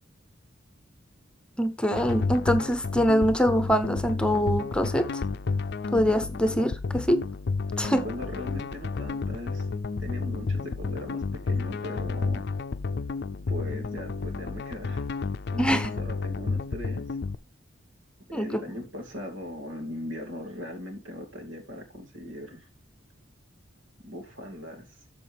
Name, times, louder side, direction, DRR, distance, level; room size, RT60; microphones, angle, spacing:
voice 1, 1.6-5.2 5.9-7.2 7.8-8.0 15.6-15.9 18.3-18.6, equal, 5° left, 0.8 m, -24 dB
sound 1, 1.9-17.4, left 4 dB, 60° left, 0.5 m, -31 dB
voice 2, 7.8-9.7 10.0-12.4 13.5-15.0 15.5-17.0 18.3-22.7 24.0-24.9, left 1 dB, 85° right, 2.8 m, -39 dB
13.5 x 5.1 x 3.5 m
head